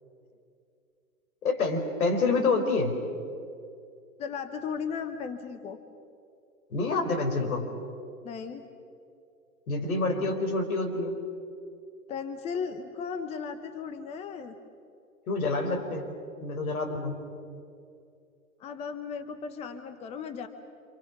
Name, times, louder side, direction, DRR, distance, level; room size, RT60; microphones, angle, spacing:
voice 1, 1.4-2.9 6.7-7.7 9.7-11.2 15.3-16.1 16.4-17.2, left 3 dB, 75° left, 4 dB, 5.0 m, -27 dB
voice 2, 4.2-5.8 8.2-8.7 12.1-14.6 18.6-20.5, left 6 dB, 15° left, 9 dB, 0.9 m, -36 dB
28.0 x 27.0 x 6.1 m, 2.4 s
hypercardioid pair, 145°, 43 cm